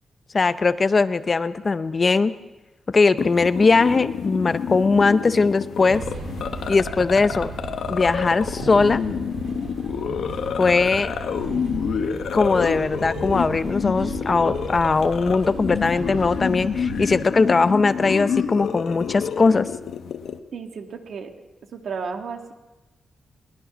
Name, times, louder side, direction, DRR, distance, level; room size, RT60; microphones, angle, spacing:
voice 1, 0.3-2.3 2.9-6.0 6.7-7.5 7.9-9.0 10.6-11.1 12.3-19.7, left 4 dB, 30° left, 13 dB, 0.6 m, -20 dB
sound 1, 3.2-20.4, left 7 dB, 75° left, 1.2 m, -29 dB
sound 2, 5.9-17.3, right 4 dB, 90° right, 3.3 m, -36 dB
voice 2, 20.5-21.3 21.7-22.5, right 5 dB, 65° right, 5 dB, 2.1 m, -33 dB
22.0 x 19.5 x 6.1 m, 1.1 s
wide cardioid pair, 165°, 0 cm